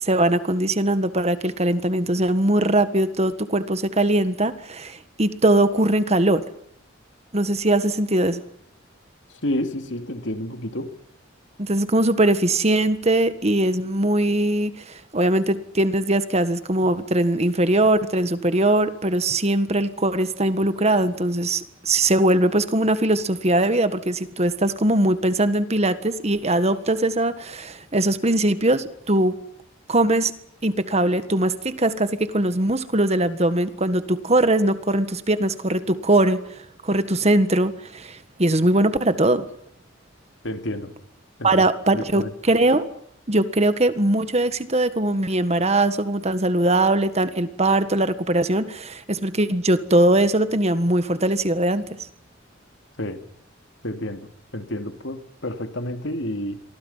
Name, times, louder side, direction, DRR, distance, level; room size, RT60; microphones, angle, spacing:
voice 1, 0.0-6.4 7.3-8.4 11.6-29.4 29.9-30.3 30.6-36.4 36.8-39.4 41.4-42.8 43.3-51.8, right 1 dB, 35° right, 11 dB, 1.6 m, -21 dB
voice 2, 9.4-10.9 40.4-40.9 41.4-41.7 41.9-42.3 53.0-53.2 53.8-54.3 54.5-56.6, left 1 dB, 70° left, 7 dB, 2.7 m, -29 dB
28.5 x 23.5 x 5.7 m, 0.69 s
head